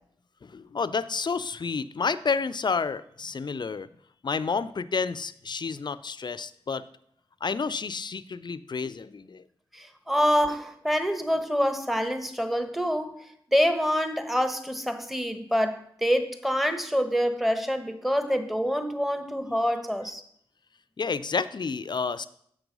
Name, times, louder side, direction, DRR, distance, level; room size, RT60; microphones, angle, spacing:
voice 1, 0.4-3.9 4.2-6.9 7.4-9.4 21.0-22.3, left 5 dB, 45° left, 15 dB, 0.5 m, -30 dB
voice 2, 9.7-13.2 13.5-20.2, equal, ahead, 9 dB, 1.1 m, -26 dB
7.5 x 6.1 x 5.3 m, 0.67 s
cardioid pair, 45°, 10 cm